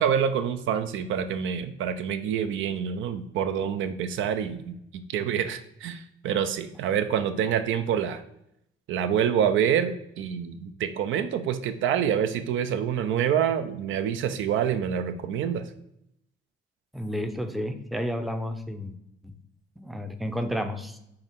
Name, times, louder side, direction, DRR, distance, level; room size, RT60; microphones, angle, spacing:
voice 1, 0.0-8.2 8.9-15.6, right 8 dB, 75° right, 9 dB, 0.4 m, -27 dB
voice 2, 16.9-18.9 19.2-19.4 19.8-21.0, equal, ahead, 7 dB, 0.5 m, -31 dB
4.5 x 3.2 x 3.5 m, 0.78 s
cardioid pair, 90°, 20 cm